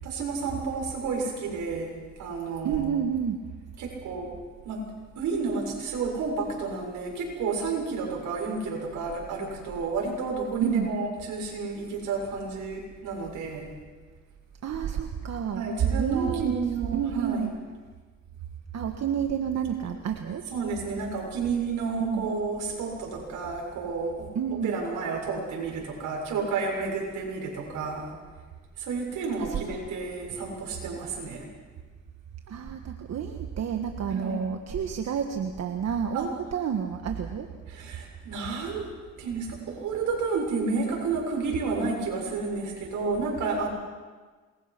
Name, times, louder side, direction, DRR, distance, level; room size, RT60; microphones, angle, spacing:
voice 1, 0.0-3.0 3.8-4.3 4.6-4.9 5.2-13.7 15.5-17.5 20.5-24.3 24.6-28.1 28.8-31.5 34.1-34.4 36.1-36.3 37.7-38.9 39.2-43.7, right 4 dB, 85° right, 1 dB, 7.1 m, -31 dB
voice 2, 2.6-3.4 10.6-10.9 14.6-15.6 16.0-16.5 16.9-17.5 18.7-20.4 22.0-22.3 24.3-24.8 29.4-29.6 32.5-37.5, right 8 dB, 60° right, 5 dB, 1.6 m, -29 dB
27.5 x 22.0 x 6.0 m, 1.4 s
cardioid pair, 90°, 30 cm